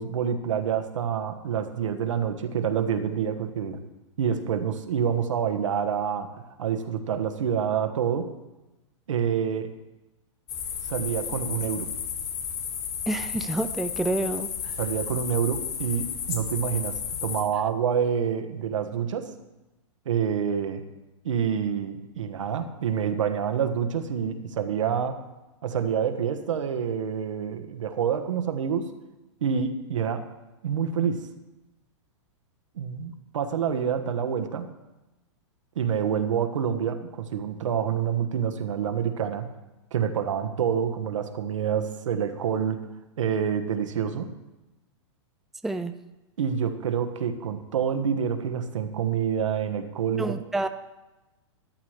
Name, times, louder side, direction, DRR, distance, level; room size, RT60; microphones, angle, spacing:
voice 1, 0.0-3.8 4.2-8.3 9.1-9.7 10.9-11.9 14.8-19.3 20.0-20.8 21.2-25.2 25.6-28.9 29.4-30.3 30.6-31.3 32.7-34.7 35.7-39.5 39.9-42.8 43.2-44.3 46.4-50.3, right 8 dB, 80° right, 7 dB, 1.2 m, -27 dB
sound 1, 10.5-17.4, left 7 dB, 40° left, 2.2 m, -33 dB
voice 2, 13.1-14.7 45.6-45.9 50.2-50.7, right 2 dB, ahead, 8 dB, 0.4 m, -28 dB
13.0 x 11.0 x 3.2 m, 1.0 s
hypercardioid pair, 130°, 16 cm